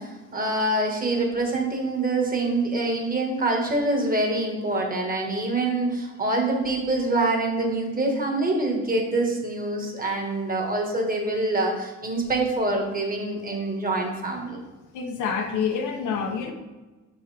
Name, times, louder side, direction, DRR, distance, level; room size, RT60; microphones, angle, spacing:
voice 1, 0.0-14.6, right 2 dB, 30° right, 1 dB, 1.8 m, -25 dB
voice 2, 14.9-16.5, left 6 dB, 85° left, 3 dB, 1.0 m, -27 dB
6.1 x 5.4 x 3.4 m, 1.2 s
cardioid pair, 90°, 30 cm